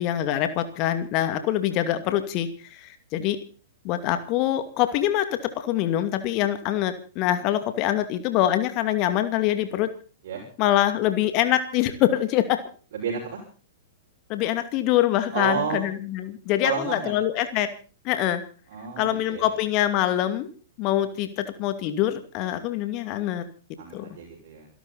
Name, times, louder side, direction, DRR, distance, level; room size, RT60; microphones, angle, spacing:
voice 1, 0.0-3.4 3.8-9.9 10.6-12.6 14.3-17.7 18.0-18.4 19.0-20.5 20.8-23.5 23.9-24.1, left 12 dB, 35° left, 9 dB, 2.4 m, -24 dB
voice 2, 12.9-13.4 15.3-15.9 16.6-17.1 18.7-19.5 23.8-24.7, right 7 dB, 50° right, -1 dB, 6.4 m, -31 dB
27.5 x 12.5 x 4.2 m, 0.40 s
figure-of-eight pair, 105°, 0 cm